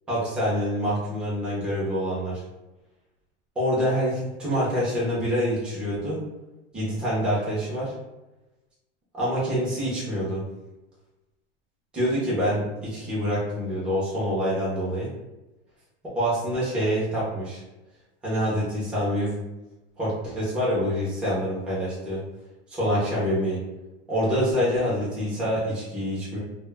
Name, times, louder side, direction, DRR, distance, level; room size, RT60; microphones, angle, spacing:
voice 1, 0.1-2.4 3.6-6.2 6.7-7.9 9.1-10.4 11.9-15.1 16.1-17.6 18.2-19.3 20.0-22.2 22.7-23.6 24.1-26.4, equal, 5° right, -9 dB, 0.4 m, -26 dB
2.1 x 2.0 x 3.2 m, 1.0 s
supercardioid pair, 175°, 32 cm